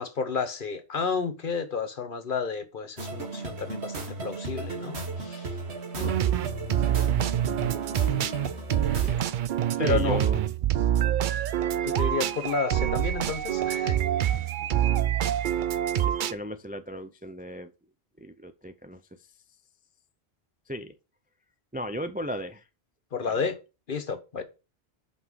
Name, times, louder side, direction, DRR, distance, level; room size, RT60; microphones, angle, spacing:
voice 1, 0.0-5.5 6.0-6.2 9.8-10.2 11.8-14.0 23.1-23.6 23.9-24.4, left 5 dB, 55° left, 1.1 m, -31 dB
sound 1, 3.0-9.2, right 3 dB, 85° right, 1.6 m, -36 dB
sound 2, 6.0-16.3, right 11 dB, 60° right, 0.6 m, -26 dB
voice 2, 7.9-8.4 8.9-9.2 9.7-10.5 15.9-17.7 18.2-19.3 20.7-21.0 21.7-22.7 23.2-23.4 24.4-24.5, equal, 15° right, 0.3 m, -36 dB
5.7 x 5.5 x 4.7 m
omnidirectional pair, 1.1 m